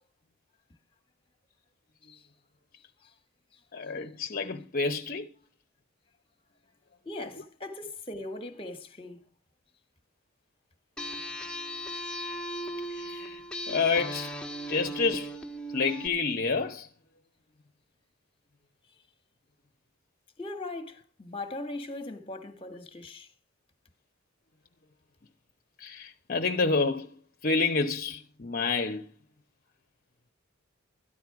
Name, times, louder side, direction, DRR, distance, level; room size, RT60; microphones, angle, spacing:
voice 1, 3.7-5.3 7.4-7.5 12.9-13.4 13.7-14.3 14.7-15.4 15.7-16.9 25.8-29.1, left 4 dB, 45° left, 0.9 m, -29 dB
voice 2, 7.0-9.2 20.4-23.3, left 2 dB, 25° left, 1.5 m, -39 dB
sound 1, 11.0-16.1, equal, 5° left, 1.4 m, -37 dB
13.5 x 11.0 x 4.8 m
head